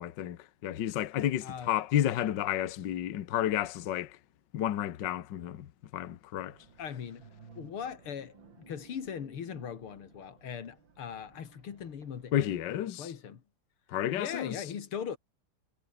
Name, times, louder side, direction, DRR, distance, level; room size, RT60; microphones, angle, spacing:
voice 1, 0.0-4.2 4.5-6.6 12.3-13.1 13.9-14.6, left 11 dB, 60° left, 1.6 m, -31 dB
voice 2, 1.4-1.8 6.8-7.3 7.6-13.4 14.1-15.2, left 7 dB, 85° left, 2.8 m, -40 dB
sound 1, 6.5-12.6, right 5 dB, 60° right, 3.6 m, -57 dB
omnidirectional pair, 2.3 m